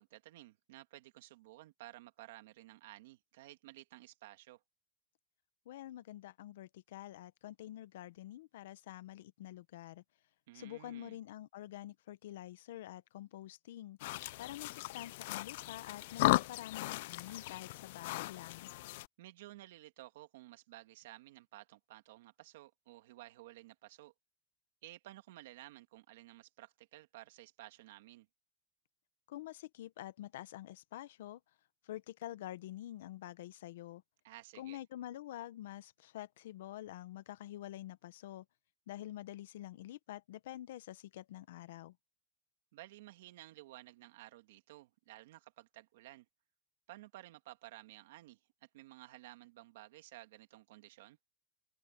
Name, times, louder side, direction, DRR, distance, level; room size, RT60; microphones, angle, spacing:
voice 1, 0.0-4.6 10.5-11.2 19.2-24.1 24.8-28.3 34.2-34.8 42.7-46.3 46.9-51.2, right 17 dB, 70° right, 2.3 m, -54 dB
voice 2, 5.7-10.0 10.5-14.0 14.4-18.7 29.3-31.4 31.9-34.0 34.6-38.4 38.9-41.9, left 14 dB, 80° left, 0.9 m, -47 dB
sound 1, 14.0-19.1, left 19 dB, 60° left, 0.3 m, -36 dB
open air
supercardioid pair, 175°, 0 cm